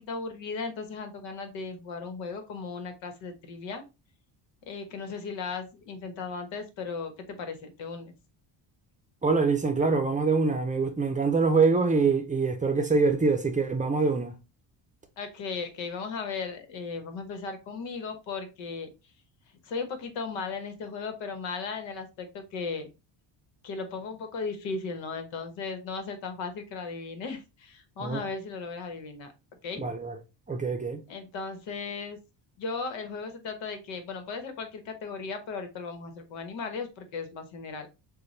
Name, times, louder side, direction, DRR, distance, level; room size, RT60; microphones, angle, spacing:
voice 1, 0.1-3.8 4.7-8.1 15.2-18.9 19.6-22.9 23.6-29.3 29.6-29.8 31.1-32.2 32.6-37.9, left 4 dB, 80° left, 1.2 m, -36 dB
voice 2, 9.2-14.3 28.0-28.2 29.8-30.2 30.5-31.0, right 4 dB, 15° right, 0.6 m, -24 dB
6.7 x 2.3 x 3.2 m
cardioid pair, 110°, 45 cm